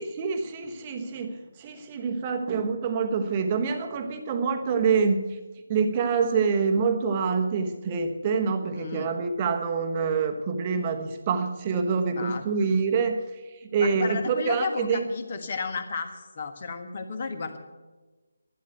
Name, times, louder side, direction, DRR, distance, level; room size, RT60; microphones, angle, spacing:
voice 1, 0.0-5.4 5.7-15.0, right 5 dB, 20° right, 5 dB, 1.2 m, -26 dB
voice 2, 8.7-9.1 12.2-12.4 13.8-17.6, left 5 dB, 35° left, 7 dB, 1.4 m, -33 dB
12.0 x 11.0 x 8.2 m, 1.2 s
figure-of-eight pair, 150°, 0 cm